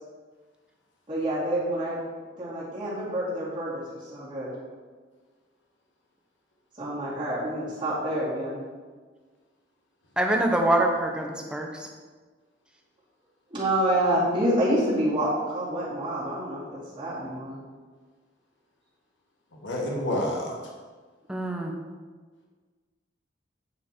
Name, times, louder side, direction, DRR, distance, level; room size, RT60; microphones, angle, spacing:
voice 1, 1.1-2.0 2.4-3.8 4.1-4.5 6.8-8.6 13.5-17.6, right 1 dB, 25° right, -11 dB, 2.6 m, -27 dB
voice 2, 10.2-11.9 21.3-21.7, right 1 dB, 5° right, 1 dB, 0.9 m, -25 dB
voice 3, 19.6-20.6, left 1 dB, 80° left, -1 dB, 1.3 m, -28 dB
8.5 x 5.2 x 4.5 m, 1.4 s
head